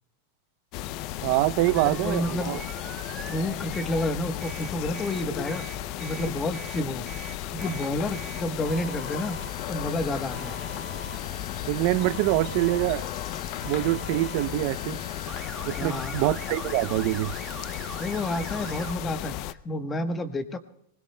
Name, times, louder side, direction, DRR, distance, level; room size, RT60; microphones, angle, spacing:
sound 1, 0.7-19.5, left 13 dB, 45° left, 0.5 m, -34 dB
voice 1, 1.2-2.6 11.7-13.1 13.6-15.0 15.6-17.3, right 17 dB, 50° right, 0.6 m, -25 dB
voice 2, 1.8-2.6 3.3-5.6 6.0-7.1 7.5-9.4 9.7-10.6 15.7-16.2 18.0-19.3 19.6-20.6, left 1 dB, 15° left, 1.1 m, -30 dB
sound 2, 1.8-4.1 4.4-18.9, right 5 dB, 15° right, 1.4 m, -43 dB
24.5 x 20.0 x 2.2 m
supercardioid pair, 150°, 0 cm